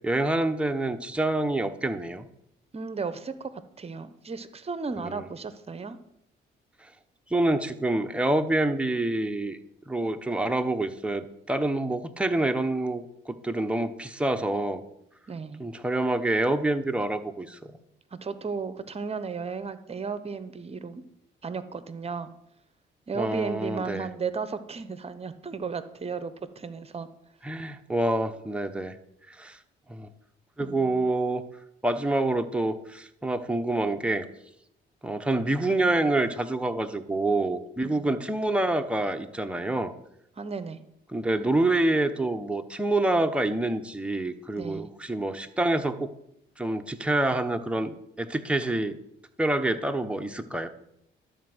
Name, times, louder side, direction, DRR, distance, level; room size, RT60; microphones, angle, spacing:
voice 1, 0.0-2.3 5.0-5.3 7.3-9.6 9.9-14.8 15.6-17.8 23.1-24.1 27.4-28.9 29.3-29.6 29.9-30.1 30.6-31.4 31.8-34.3 35.0-39.9 41.1-46.1 46.6-49.0 49.4-50.7, right 2 dB, 5° right, 6 dB, 0.9 m, -27 dB
voice 2, 2.7-3.5 3.8-6.0 15.3-15.6 18.1-21.0 21.4-22.3 23.1-27.1 30.6-31.0 37.8-38.1 40.4-40.8 44.6-44.9, right 5 dB, 30° right, 13 dB, 0.9 m, -34 dB
12.0 x 4.6 x 7.9 m, 0.77 s
cardioid pair, 90°, 20 cm